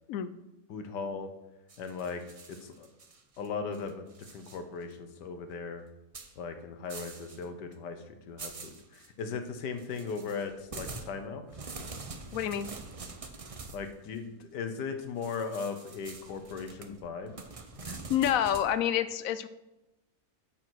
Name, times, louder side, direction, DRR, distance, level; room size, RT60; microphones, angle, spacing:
voice 1, 0.7-1.3 1.8-2.2 2.5-2.9 3.4-4.0 4.3-5.8 6.4-8.8 9.2-11.4 13.7-17.3, left 5 dB, 85° left, 7 dB, 1.6 m, -37 dB
sound 1, 1.7-3.5 3.7-4.6 4.9-5.0 6.1-6.3 6.9-7.4 7.7-7.8 8.4-9.1 9.8-13.9 15.2-18.7, right 3 dB, 45° right, 0.4 m, -45 dB
voice 2, 12.3-12.7 17.9-19.5, left 10 dB, 70° left, 13 dB, 0.9 m, -28 dB
8.9 x 5.6 x 6.3 m, 0.96 s
omnidirectional pair, 1.8 m